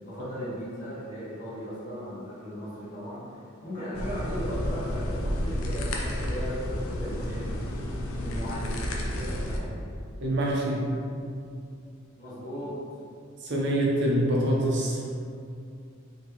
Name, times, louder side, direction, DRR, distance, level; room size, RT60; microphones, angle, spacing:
voice 1, 0.0-7.5 8.2-8.7 9.1-9.8 12.2-12.7, equal, 35° left, -11 dB, 1.4 m, -37 dB
sound 1, 3.9-9.6, equal, 75° left, 0.5 m, -31 dB
voice 2, 10.2-10.9 13.4-15.0, right 1 dB, 55° right, -4 dB, 0.8 m, -25 dB
4.3 x 3.2 x 3.0 m, 2.4 s
head